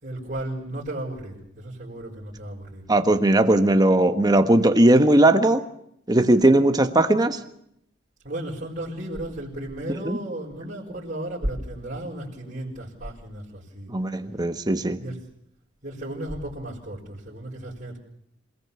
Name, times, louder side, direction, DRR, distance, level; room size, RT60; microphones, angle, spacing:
voice 1, 0.0-2.8 8.2-13.9 15.0-15.2 15.8-18.0, right 1 dB, 45° right, -8 dB, 5.0 m, -34 dB
voice 2, 2.9-5.6 6.1-7.4 10.0-10.2 13.9-15.0, right 1 dB, 20° right, 7 dB, 1.4 m, -18 dB
27.0 x 18.0 x 7.1 m, 0.74 s
head